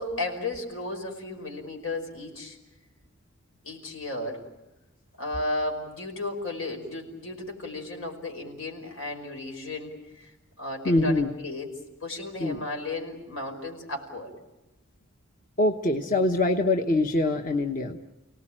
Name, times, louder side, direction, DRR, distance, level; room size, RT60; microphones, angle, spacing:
voice 1, 0.0-2.6 3.6-4.4 5.2-10.3 10.6-11.7 12.0-14.3, left 2 dB, 85° left, 3 dB, 5.4 m, -34 dB
voice 2, 10.8-11.3 12.4-12.6 15.6-18.0, left 2 dB, 40° left, 4 dB, 1.1 m, -24 dB
30.0 x 18.5 x 8.9 m, 1.0 s
head